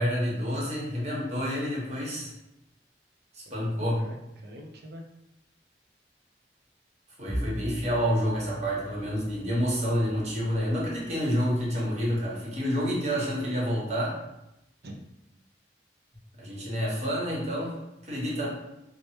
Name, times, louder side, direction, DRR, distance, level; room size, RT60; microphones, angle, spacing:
voice 1, 0.0-2.3 3.3-4.0 7.2-14.1 16.4-18.5, equal, 40° right, -5 dB, 1.1 m, -28 dB
voice 2, 3.5-5.0 14.8-14.9 18.3-18.5, equal, 60° right, 2 dB, 0.5 m, -44 dB
Bowed string instrument, 7.3-13.7, equal, ahead, 0.6 m, -41 dB
4.5 x 2.1 x 3.1 m, 0.88 s
head